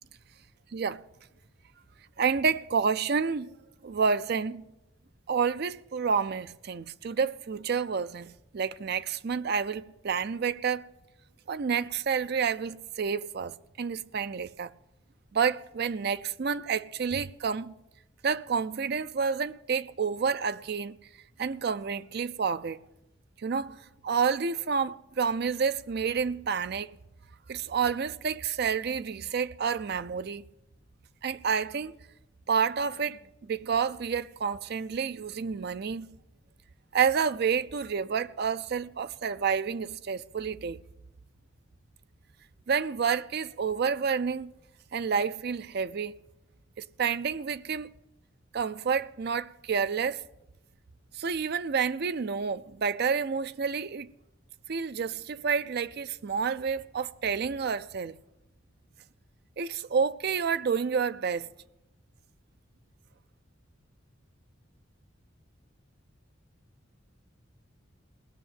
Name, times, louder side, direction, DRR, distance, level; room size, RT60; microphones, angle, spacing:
voice 1, 0.7-1.0 2.2-3.5 3.8-4.6 5.3-10.9 11.5-14.7 15.3-17.7 18.2-21.0 21.4-22.8 23.4-23.8 24.0-26.9 27.5-30.4 31.2-31.9 32.5-36.2 36.9-40.8 42.7-44.5 44.9-46.2 47.0-47.9 48.5-50.2 51.1-54.1 54.7-58.2 59.6-61.5, right 6 dB, 55° right, 0.4 m, -29 dB
18.5 x 6.5 x 9.0 m
head